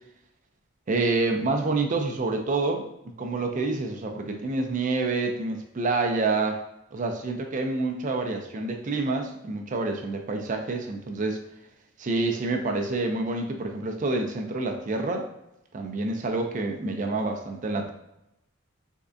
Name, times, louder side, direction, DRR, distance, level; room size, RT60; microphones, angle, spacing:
voice 1, 0.9-2.9 3.2-6.6 6.9-11.4 12.0-15.3 15.7-17.9, right 3 dB, 40° right, 4 dB, 0.4 m, -27 dB
3.5 x 3.2 x 2.6 m, 0.85 s
head